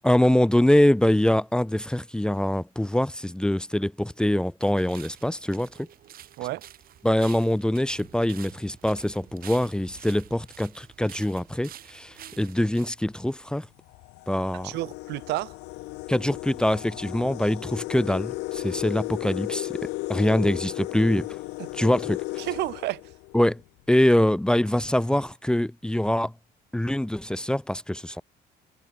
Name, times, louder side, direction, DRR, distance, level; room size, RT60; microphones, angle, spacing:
voice 1, 0.0-5.9 7.0-13.7 14.3-14.7 16.1-21.3 21.7-22.2 23.3-23.6 23.9-26.3 26.7-28.2, left 1 dB, 5° left, 0.8 m, -24 dB
sound 1, 4.6-12.9, right 11 dB, 60° right, 2.9 m, -48 dB
sound 2, 12.2-12.5 13.3-13.4 13.8-23.6, left 22 dB, 90° left, 0.6 m, -35 dB
voice 2, 14.5-15.5 21.6-21.7 22.4-23.0, right 18 dB, 85° right, 1.3 m, -31 dB
cardioid pair, 110°, 17 cm